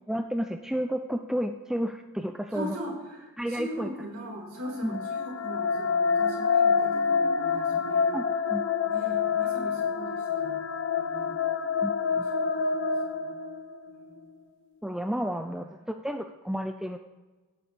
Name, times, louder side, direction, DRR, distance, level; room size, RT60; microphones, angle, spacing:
voice 1, 0.1-2.8 3.4-3.9 4.8-5.0 8.1-8.2 8.5-8.6 11.8-12.3 14.8-17.0, equal, ahead, 6 dB, 0.4 m, -31 dB
voice 2, 2.5-8.2 8.9-10.5 11.0-11.3 12.1-13.4 13.9-14.2, equal, 70° right, -4 dB, 3.9 m, -40 dB
sound 1, 4.7-13.9, left 5 dB, 60° left, 0.8 m, -27 dB
17.0 x 9.2 x 3.4 m, 1.2 s
head